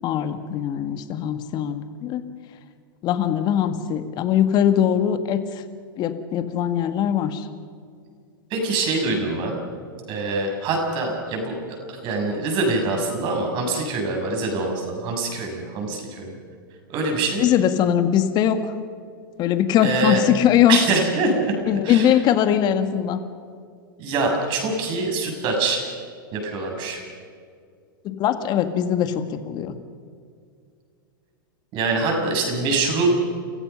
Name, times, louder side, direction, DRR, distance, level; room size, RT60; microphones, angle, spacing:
voice 1, 0.0-2.2 3.0-5.4 6.0-7.5 17.4-18.7 19.4-20.8 21.7-23.2 28.0-29.8, left 10 dB, 35° left, 9 dB, 1.9 m, -21 dB
voice 2, 8.5-9.6 10.1-11.5 11.9-16.3 16.9-17.4 19.8-20.2 20.7-21.5 21.8-22.1 24.0-25.8 26.3-27.0 31.7-33.1, right 3 dB, 40° right, 2 dB, 6.8 m, -24 dB
29.5 x 15.5 x 5.7 m, 2.3 s
hypercardioid pair, 105°, 12 cm